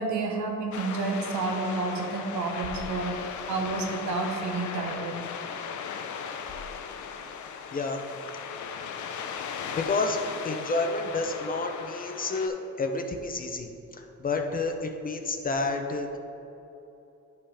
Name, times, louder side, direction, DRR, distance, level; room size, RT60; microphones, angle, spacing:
voice 1, 0.0-5.2, right 3 dB, 85° right, 2 dB, 1.1 m, -30 dB
sound 1, 0.7-12.5, left 6 dB, 85° left, 0.6 m, -37 dB
voice 2, 7.7-8.0 9.7-13.7 14.2-16.2, left 3 dB, 30° left, 4 dB, 0.6 m, -29 dB
10.0 x 5.5 x 3.4 m, 2.9 s
cardioid pair, 135°, 29 cm